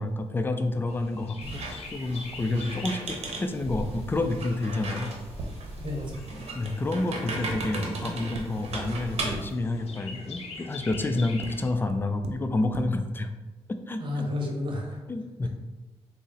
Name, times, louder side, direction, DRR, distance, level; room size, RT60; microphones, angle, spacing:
voice 1, 0.0-5.1 6.5-13.3 13.7-14.3 15.1-15.5, left 2 dB, 20° left, 8 dB, 0.3 m, -29 dB
Chirp tweet, 0.9-11.7, left 3 dB, 70° left, 0.6 m, -46 dB
Squeak, 1.4-9.5, right 2 dB, 75° right, 0.8 m, -36 dB
voice 2, 5.8-6.3 14.0-15.0, left 2 dB, 50° right, -1 dB, 1.0 m, -31 dB
sound 1, 7.5-7.6 8.0-8.4 8.8-8.9 9.3-9.4 10.9-11.0 11.4-11.5 11.9-12.0 12.2-12.3 12.7-12.8, right 5 dB, 90° right, 0.4 m, -39 dB
3.9 x 2.0 x 3.8 m, 1.1 s
cardioid pair, 80°, 11 cm